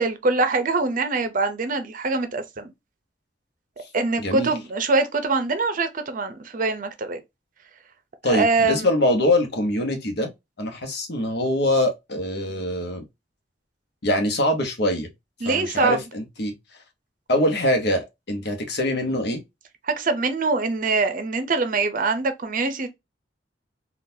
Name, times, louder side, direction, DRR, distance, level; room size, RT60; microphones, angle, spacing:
voice 1, 0.0-2.7 3.9-7.2 8.3-8.9 15.4-16.0 19.8-22.9, right 3 dB, 45° right, 0.6 m, -23 dB
voice 2, 4.2-4.5 8.2-10.3 10.6-13.0 14.0-15.1 15.4-16.5 17.3-19.4, left 1 dB, 60° left, 1.0 m, -23 dB
3.8 x 2.4 x 2.6 m
head